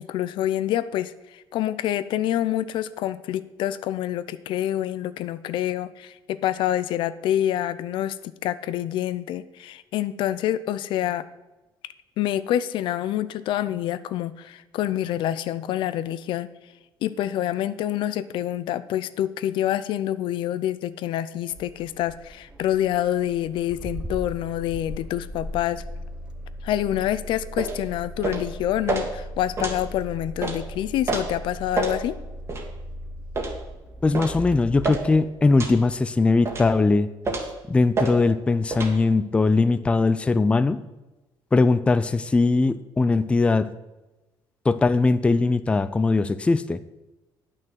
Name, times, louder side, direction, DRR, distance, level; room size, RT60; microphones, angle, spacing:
voice 1, 0.0-8.2 8.4-11.2 12.2-16.5 17.0-25.8 26.6-32.2, left 12 dB, 70° left, 15 dB, 0.5 m, -27 dB
Engine starting, 21.5-35.6, equal, 10° right, 0.8 m, -38 dB
sound 1, 27.6-27.8 28.2-28.5 28.9-29.1 29.6-29.8 30.4-30.6 31.1-31.2 31.8-32.0 32.5-32.6 33.3-33.6 34.1-34.4 34.8-35.0 35.6-35.8 36.5-36.7 37.2-37.5 37.9-38.1 38.7-38.9, right 3 dB, 30° right, 1.7 m, -27 dB
voice 2, 34.0-37.1 37.7-40.8 41.5-43.7 44.7-46.8, left 3 dB, 15° left, 13 dB, 0.4 m, -20 dB
9.0 x 6.2 x 7.4 m, 1.1 s
cardioid pair, 135°, 9 cm